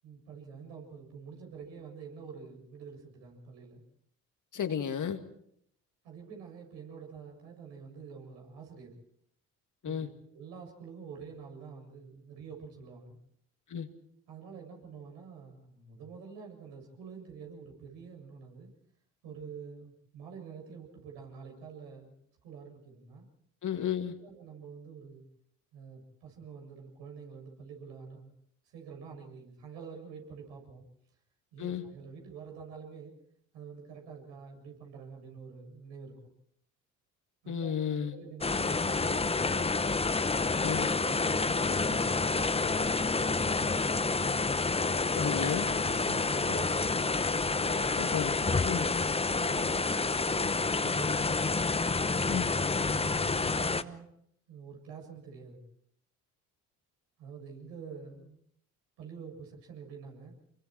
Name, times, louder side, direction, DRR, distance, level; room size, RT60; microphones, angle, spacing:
voice 1, 0.0-3.8 6.0-9.0 9.8-13.2 14.3-18.7 19.2-22.2 22.4-23.2 24.2-25.2 25.7-28.3 28.6-30.8 31.5-33.1 33.5-36.3 37.4-39.4 41.0-44.5 45.1-47.2 47.5-48.0 49.2-51.7 52.3-54.1 54.5-55.6 57.2-58.4 59.0-60.4, right 6 dB, 65° right, 1 dB, 7.5 m, -47 dB
voice 2, 4.5-5.2 9.8-10.1 13.7-13.9 23.6-24.2 31.6-31.8 37.5-38.1 40.6-40.9 45.1-45.7 48.0-48.4 48.6-48.9 52.3-52.5, left 8 dB, 45° left, 6 dB, 2.4 m, -33 dB
sound 1, 38.4-53.8, left 4 dB, 15° left, 0.9 m, -29 dB
28.5 x 23.0 x 4.7 m, 0.71 s
figure-of-eight pair, 55°, 44 cm